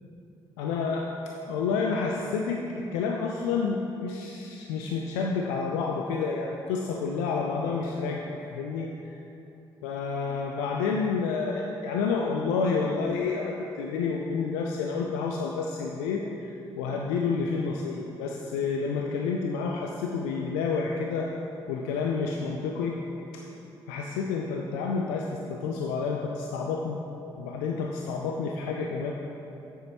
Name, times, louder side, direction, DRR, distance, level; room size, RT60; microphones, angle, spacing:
voice 1, 0.6-1.1 1.5-9.1 9.8-21.3 21.7-23.0 23.3-23.4 23.9-27.0 27.4-29.1, left 5 dB, 80° left, 0 dB, 0.5 m, -29 dB
11.5 x 8.1 x 2.9 m, 2.9 s
hypercardioid pair, 40°, 13 cm